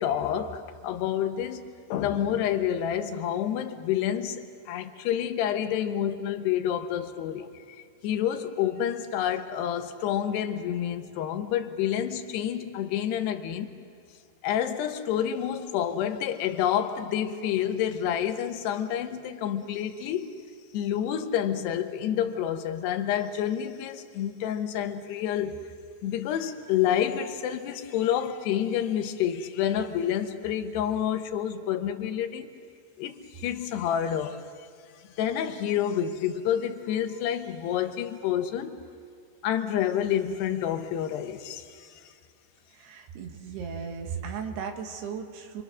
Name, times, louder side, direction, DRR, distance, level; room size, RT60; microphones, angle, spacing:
voice 1, 0.0-1.6 1.9-13.7 14.4-20.3 20.7-25.6 26.0-32.5 33.0-34.4 35.0-38.8 39.4-42.1, left 10 dB, 85° left, 7 dB, 3.2 m, -28 dB
voice 2, 42.7-45.6, right 6 dB, 80° right, 3 dB, 3.8 m, -36 dB
28.5 x 24.0 x 6.2 m, 2.2 s
omnidirectional pair, 4.7 m